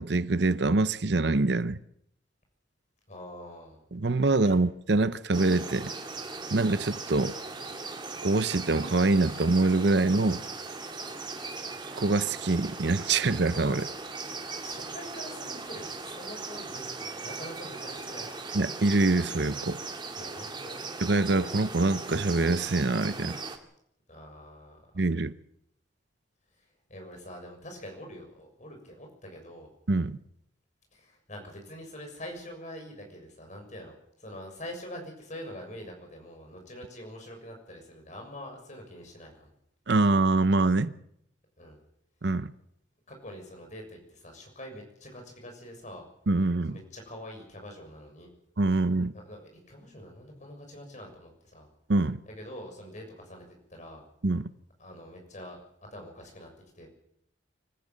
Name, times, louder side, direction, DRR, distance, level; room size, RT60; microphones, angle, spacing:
voice 1, 0.0-1.8 3.9-5.9 6.5-7.3 8.2-10.4 11.9-13.9 18.5-19.8 21.0-23.4 25.0-25.3 29.9-30.2 39.9-40.9 42.2-42.5 46.3-46.8 48.6-49.1 51.9-52.2 54.2-54.5, right 2 dB, 60° right, 0.8 m, -25 dB
voice 2, 3.1-3.8 4.5-4.6 14.6-18.3 20.1-20.8 24.1-24.8 26.6-29.7 30.9-39.5 41.6-41.8 43.1-46.1 46.7-48.3 49.1-51.7 52.3-54.0 54.8-55.6 55.9-56.5 56.7-56.9, equal, 40° left, 6.7 m, -45 dB
sound 1, 5.3-23.6, right 3 dB, 25° right, 2.2 m, -39 dB
25.0 x 15.0 x 7.6 m
head